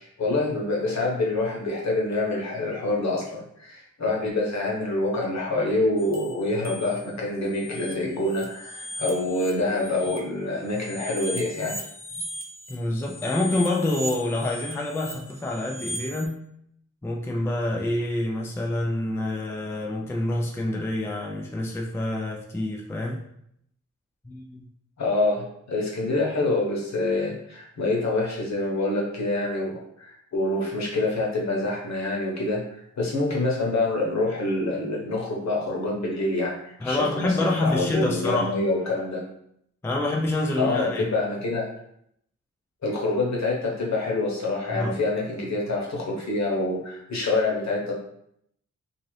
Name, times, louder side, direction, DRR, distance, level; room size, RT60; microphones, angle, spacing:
voice 1, 0.0-11.8 25.0-32.6 33.0-37.4 37.6-39.2 40.6-41.7 42.8-47.9, left 2 dB, 60° left, -2 dB, 1.0 m, -26 dB
sound 1, 6.0-7.1 7.4-10.2 10.7-16.3, equal, 30° right, 0.6 m, -38 dB
voice 2, 12.7-16.5 17.0-23.3 24.2-24.7 36.8-38.5 39.8-41.0 44.7-44.9, left 2 dB, 10° left, 0 dB, 0.4 m, -27 dB
2.8 x 2.5 x 3.1 m, 0.72 s
cardioid pair, 75°, 31 cm